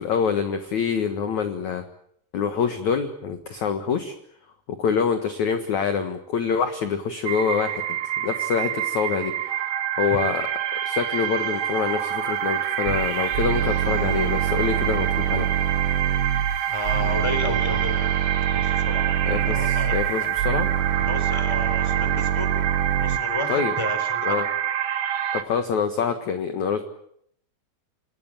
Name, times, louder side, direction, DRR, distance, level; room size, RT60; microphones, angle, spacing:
voice 1, 0.0-1.8 2.3-4.2 4.8-9.6 10.0-10.4 10.8-15.5 19.3-20.7 23.5-23.7 24.2-24.5 25.3-26.8, left 6 dB, 55° left, 8 dB, 2.3 m, -26 dB
sound 1, 7.3-25.4, right 11 dB, 50° right, 2.4 m, -27 dB
sound 2, 12.9-23.2, right 9 dB, 80° right, 3.3 m, -25 dB
voice 2, 16.7-20.3 20.9-22.5 23.0-24.4, left 2 dB, 5° left, 9 dB, 3.2 m, -33 dB
29.0 x 17.5 x 9.0 m, 0.69 s
omnidirectional pair, 5.0 m